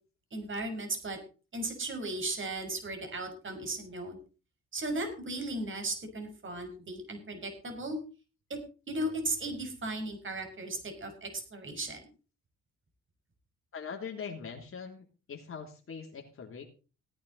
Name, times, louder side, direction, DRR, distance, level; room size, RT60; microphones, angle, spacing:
voice 1, 0.3-1.2 1.5-4.2 4.7-8.0 8.9-12.0, right 2 dB, 40° right, 5 dB, 6.0 m, -36 dB
voice 2, 13.7-16.6, left 6 dB, 45° left, 1 dB, 3.2 m, -42 dB
17.0 x 10.0 x 4.2 m, 0.35 s
cardioid pair, 90°, 30 cm